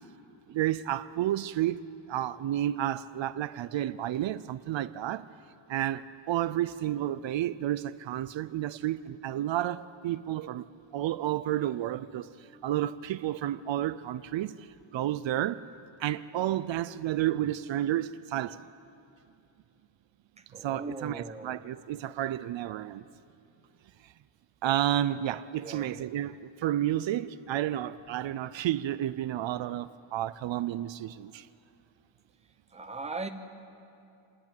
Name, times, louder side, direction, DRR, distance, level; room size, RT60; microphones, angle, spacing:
voice 1, 0.5-1.8 2.1-5.2 5.7-10.6 10.9-12.2 12.6-14.5 14.9-15.6 16.0-18.6 20.6-23.0 24.6-26.3 26.6-31.3, right 12 dB, 75° right, 0.6 m, -31 dB
voice 2, 20.5-21.6 25.6-26.0 32.7-33.3, right 3 dB, 15° right, 0.8 m, -39 dB
27.5 x 11.0 x 9.0 m
wide cardioid pair, 180°, 45 cm